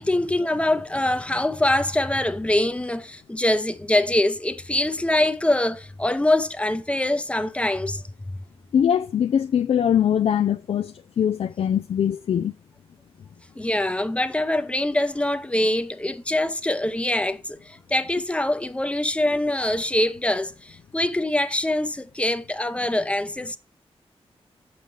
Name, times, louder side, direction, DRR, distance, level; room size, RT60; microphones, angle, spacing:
voice 1, 0.0-8.0 13.6-23.6, left 1 dB, 10° left, 0.6 m, -24 dB
voice 2, 8.7-12.5, left 9 dB, 65° left, 0.4 m, -22 dB
6.6 x 5.6 x 4.7 m
wide cardioid pair, 105°, 11 cm